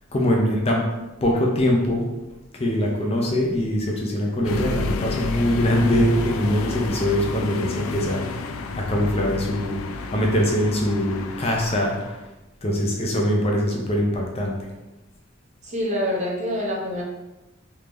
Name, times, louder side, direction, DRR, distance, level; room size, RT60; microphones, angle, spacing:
voice 1, 0.1-0.9 1.2-2.1 2.5-8.2 8.7-12.2 12.6-14.7, equal, 30° left, -1 dB, 0.6 m, -22 dB
sound 1, 4.4-12.2, left 4 dB, 85° left, 0.3 m, -31 dB
voice 2, 15.6-17.0, equal, 35° right, -3 dB, 0.8 m, -26 dB
3.3 x 2.7 x 3.4 m, 1.0 s
head